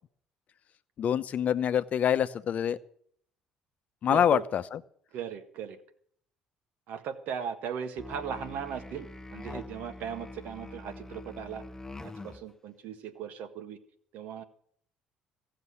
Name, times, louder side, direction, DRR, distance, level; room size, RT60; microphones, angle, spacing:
voice 1, 1.0-2.8 4.0-4.8, left 9 dB, 55° left, 13 dB, 0.8 m, -26 dB
voice 2, 4.1-4.4 5.1-5.8 6.9-11.6 12.0-13.8 14.1-14.4, right 7 dB, 70° right, 8 dB, 1.5 m, -38 dB
Musical instrument, 8.0-12.5, left 2 dB, 15° left, 0.7 m, -44 dB
15.5 x 6.8 x 9.7 m, 0.64 s
supercardioid pair, 65°, 3 cm